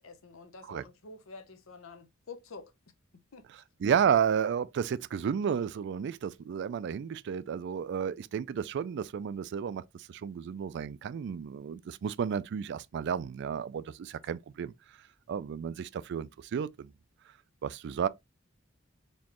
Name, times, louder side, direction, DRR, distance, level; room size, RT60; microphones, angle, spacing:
voice 1, 0.0-2.7 3.3-3.5, left 4 dB, 80° left, 0.7 m, -48 dB
voice 2, 3.8-14.7 15.3-16.9 17.6-18.1, right 7 dB, 55° right, 0.3 m, -32 dB
4.2 x 3.1 x 2.9 m
head